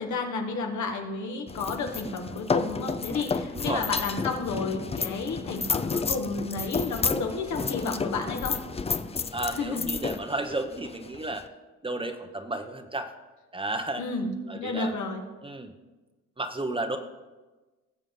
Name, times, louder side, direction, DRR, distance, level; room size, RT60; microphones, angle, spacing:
voice 1, 0.0-8.6 9.5-9.9 14.0-15.2, left 3 dB, 75° left, 3 dB, 1.7 m, -31 dB
sound 1, 1.5-11.5, left 5 dB, 20° left, 0.5 m, -31 dB
voice 2, 3.5-3.9 9.3-11.4 11.8-13.1 13.5-14.0 14.5-14.9 15.4-15.7 16.4-17.0, right 2 dB, 15° right, 7 dB, 0.9 m, -32 dB
18.0 x 7.2 x 3.8 m, 1.2 s
cardioid pair, 90°, 30 cm